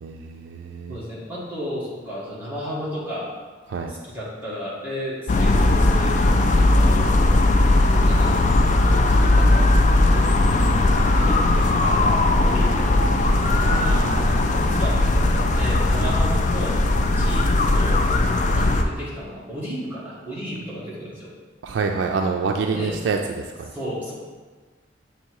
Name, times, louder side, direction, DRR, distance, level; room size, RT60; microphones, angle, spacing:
voice 1, 0.0-1.0 3.7-3.9 13.6-14.4 21.6-23.7, right 4 dB, 85° right, 3 dB, 0.4 m, -27 dB
voice 2, 0.9-3.3 3.9-7.6 8.1-8.4 9.1-9.6 11.1-16.8 17.1-18.0 18.5-21.3 22.7-23.0 23.7-24.1, equal, 10° right, -8 dB, 1.6 m, -33 dB
sound 1, 5.3-18.8, left 2 dB, 40° left, 0.4 m, -18 dB
7.8 x 3.0 x 4.6 m, 1.4 s
head